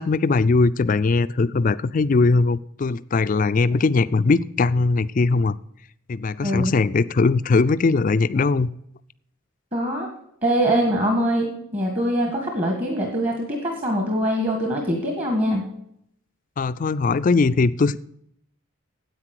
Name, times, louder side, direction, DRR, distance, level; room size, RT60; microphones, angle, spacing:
voice 1, 0.0-5.5 6.1-8.7 16.6-18.0, left 3 dB, 40° left, 15 dB, 0.3 m, -20 dB
voice 2, 6.4-6.7 9.7-10.1 10.4-15.6, equal, 30° right, 2 dB, 1.6 m, -23 dB
9.7 x 8.3 x 6.5 m, 0.72 s
head